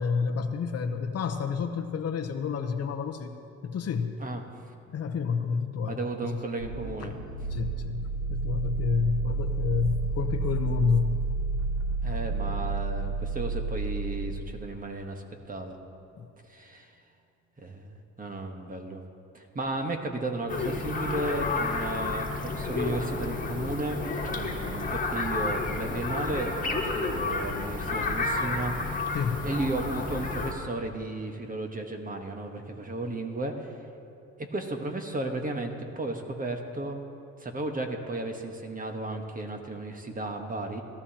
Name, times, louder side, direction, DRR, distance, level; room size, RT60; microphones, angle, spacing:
voice 1, 0.0-3.3 3.6-4.2 4.9-6.3 7.0-7.2 7.5-11.2 16.2-16.3 29.1-29.5, left 6 dB, 55° left, 6 dB, 0.9 m, -29 dB
voice 2, 5.9-7.1 12.0-15.8 16.5-16.9 17.6-19.0 19.3-24.0 24.3-29.2 29.4-33.7 34.4-37.0 37.4-40.8, right 2 dB, 30° right, 4 dB, 1.3 m, -34 dB
sound 1, 6.6-14.8, right 3 dB, 75° right, 1.8 m, -31 dB
sound 2, 20.5-30.5, left 3 dB, 25° left, 1.6 m, -31 dB
18.0 x 13.0 x 2.9 m, 2.7 s
cardioid pair, 90°, 30 cm